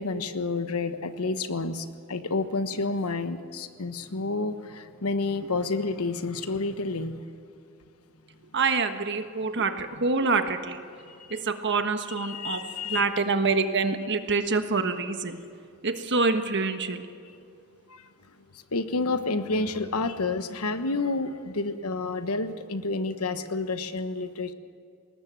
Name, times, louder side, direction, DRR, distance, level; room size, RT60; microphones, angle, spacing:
voice 1, 0.0-7.2 11.1-11.4 12.2-13.0 17.9-18.0 18.7-24.5, left 3 dB, 75° left, 10 dB, 1.2 m, -29 dB
voice 2, 8.5-10.8 11.3-15.4 15.8-17.0, right 4 dB, 55° right, 8 dB, 1.4 m, -26 dB
20.5 x 19.0 x 7.6 m, 2.4 s
head